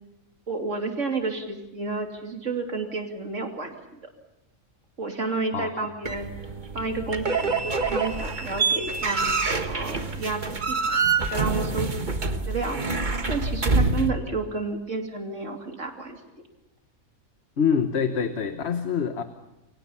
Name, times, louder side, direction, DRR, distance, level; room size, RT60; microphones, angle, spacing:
voice 1, 0.5-3.7 4.0-4.1 5.0-6.3 6.7-9.2 9.6-12.8 13.3-16.2, right 3 dB, 60° right, 3 dB, 3.1 m, -31 dB
voice 2, 5.5-5.9 17.6-19.2, left 6 dB, 50° left, 8 dB, 1.3 m, -25 dB
sound 1, 6.0-14.1, right 4 dB, 35° right, 1.5 m, -26 dB
29.0 x 24.5 x 5.7 m, 0.93 s
omnidirectional pair, 1.5 m